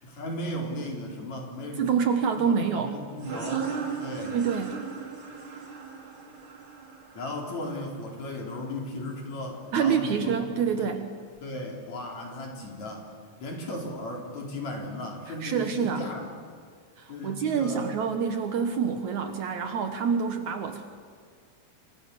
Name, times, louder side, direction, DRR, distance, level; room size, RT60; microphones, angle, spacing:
voice 1, 0.0-2.0 2.3-3.7 4.0-4.4 7.1-10.5 10.8-10.9 11.4-13.1 13.4-16.3 17.1-17.9, left 1 dB, 50° left, 1 dB, 4.9 m, -36 dB
voice 2, 1.8-3.0 4.2-4.8 9.7-11.1 15.4-16.0 17.0-20.9, right 6 dB, 65° right, 7 dB, 2.3 m, -27 dB
sound 1, 3.2-8.6, right 6 dB, 35° right, 3.2 m, -37 dB
28.5 x 24.5 x 6.9 m, 2.1 s
omnidirectional pair, 4.2 m